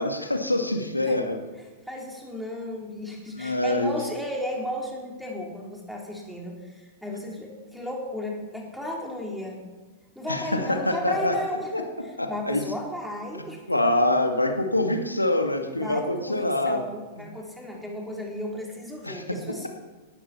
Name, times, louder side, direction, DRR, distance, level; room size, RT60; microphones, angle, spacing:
voice 1, 0.0-1.4 3.4-4.0 10.3-10.4 10.7-11.3 11.7-11.8 12.2-12.6 13.7-16.8 19.0-19.2, left 1 dB, 90° left, 4 dB, 2.0 m, -25 dB
voice 2, 1.9-9.6 10.2-13.8 15.8-19.7, left 1 dB, ahead, -2 dB, 3.7 m, -34 dB
18.0 x 13.0 x 4.4 m, 1.3 s
figure-of-eight pair, 100°, 0 cm